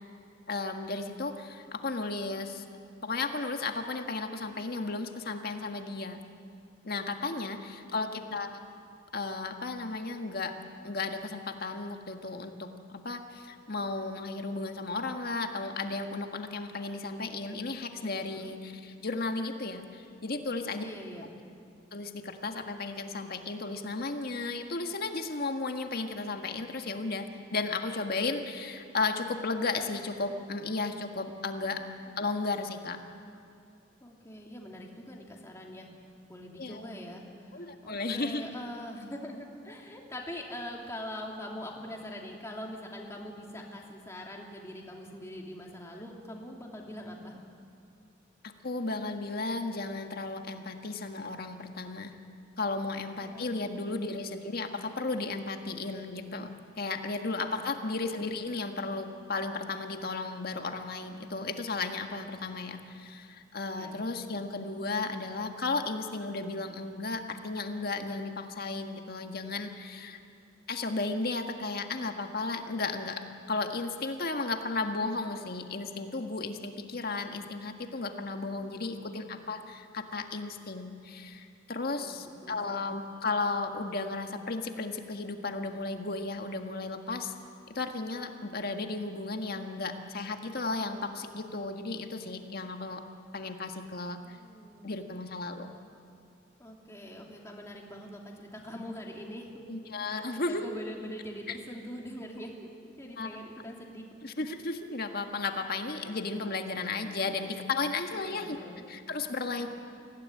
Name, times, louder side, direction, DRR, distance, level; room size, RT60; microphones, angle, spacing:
voice 1, 0.5-2.6 3.0-6.2 6.8-8.6 9.1-10.5 10.8-12.7 13.0-20.8 21.9-27.3 27.5-31.8 32.2-33.0 36.6-36.9 37.5-38.4 48.6-52.1 52.6-70.2 70.7-73.2 73.5-87.3 87.7-93.0 93.3-94.4 94.8-95.7 99.7-100.6 101.5-101.6 103.2-103.3 104.2-108.6 108.9-109.7, left 3 dB, 50° left, 5 dB, 1.7 m, -34 dB
voice 2, 7.2-8.4 18.3-18.6 20.8-21.3 31.7-32.1 34.0-35.9 36.3-47.4 53.2-54.1 57.5-58.0 63.7-64.0 78.5-79.1 81.8-82.8 94.2-94.9 96.6-99.6 100.0-102.5 102.8-104.1 106.0-106.2 107.0-107.3 108.1-108.9, equal, 15° left, -1 dB, 2.8 m, -44 dB
24.5 x 16.5 x 9.8 m, 2.4 s
head